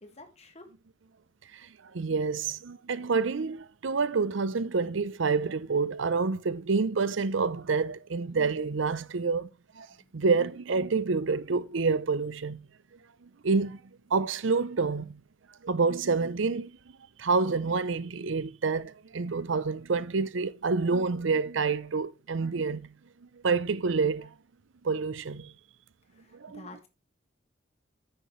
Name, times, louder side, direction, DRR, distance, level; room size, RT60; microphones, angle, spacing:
voice 1, 0.0-0.7 9.9-10.2 26.1-26.9, left 2 dB, 35° left, 1.8 m, -50 dB
voice 2, 1.9-9.5 9.8-9.9 10.1-12.6 13.4-13.8 14.1-15.2 15.6-16.7 17.2-22.9 23.4-24.3 24.8-25.5 26.3-26.6, right 4 dB, 80° right, 0.6 m, -28 dB
10.0 x 8.9 x 3.1 m
head